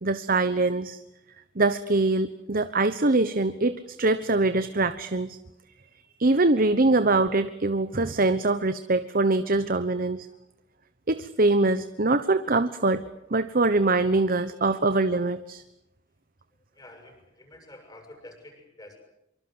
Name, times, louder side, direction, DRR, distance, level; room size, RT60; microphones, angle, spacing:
voice 1, 0.0-1.0 1.6-5.4 6.2-10.3 11.1-13.0 13.3-15.6, right 2 dB, 50° right, 11 dB, 1.1 m, -23 dB
voice 2, 16.7-19.0, left 1 dB, 20° left, 4 dB, 7.9 m, -48 dB
26.0 x 24.0 x 8.0 m, 0.84 s
head